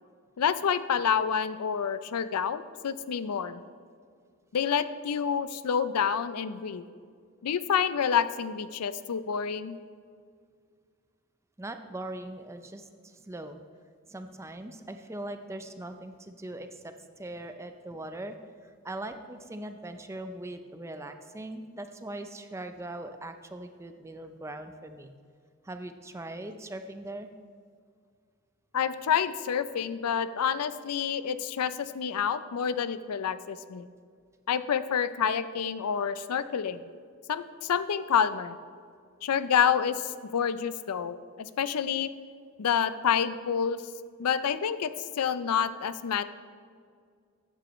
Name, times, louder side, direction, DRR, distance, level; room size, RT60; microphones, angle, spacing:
voice 1, 0.4-3.6 4.5-6.8 7.4-9.8 28.7-33.9 34.5-36.8 37.3-38.6 39.2-42.1 42.6-43.8 44.2-44.9 45.2-46.2, left 7 dB, 90° left, 13 dB, 0.5 m, -28 dB
voice 2, 11.6-13.6 14.1-25.1 25.6-27.3 36.3-36.4 42.3-42.4, right 1 dB, 10° right, 8 dB, 0.4 m, -41 dB
14.0 x 9.0 x 3.1 m, 2.1 s
head